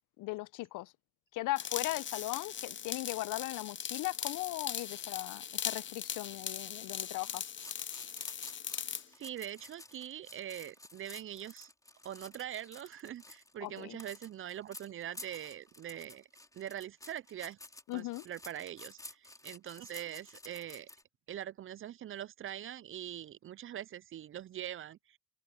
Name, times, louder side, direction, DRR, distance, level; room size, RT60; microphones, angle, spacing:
voice 1, 0.2-0.9 1.3-7.5 13.6-14.0 17.9-18.2, left 18 dB, 65° left, 0.8 m, -38 dB
sound 1, 1.6-9.1, left 8 dB, 35° left, 0.9 m, -39 dB
sound 2, 6.9-21.0, left 1 dB, 10° left, 3.8 m, -52 dB
voice 2, 9.1-11.7 12.0-16.3 16.5-17.6 17.9-20.9 21.3-25.2, right 11 dB, 40° right, 0.5 m, -43 dB
hypercardioid pair, 70°, 34 cm